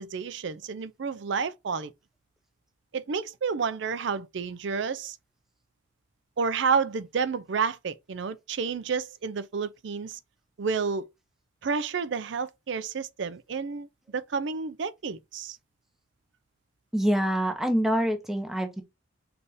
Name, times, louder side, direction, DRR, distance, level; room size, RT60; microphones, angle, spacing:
voice 1, 0.0-1.9 2.9-5.2 6.4-10.2 10.6-11.1 11.6-15.6, right 5 dB, 60° right, 0.4 m, -30 dB
voice 2, 16.9-18.8, equal, ahead, 0.7 m, -25 dB
4.0 x 3.3 x 3.5 m
head